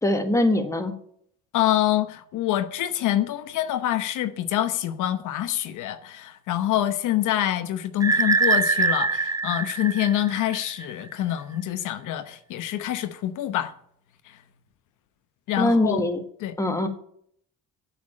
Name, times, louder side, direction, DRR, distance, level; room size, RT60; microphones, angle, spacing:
voice 1, 0.0-0.9 15.6-16.2 16.6-16.9, left 1 dB, 10° left, 1.6 m, -22 dB
voice 2, 1.5-13.7 14.3-14.4 15.5-16.0 16.4-16.5, left 12 dB, 90° left, 1.0 m, -26 dB
sound 1, 8.0-10.9, right 4 dB, 10° right, 0.3 m, -23 dB
8.4 x 7.1 x 8.6 m
cardioid pair, 90°, 30 cm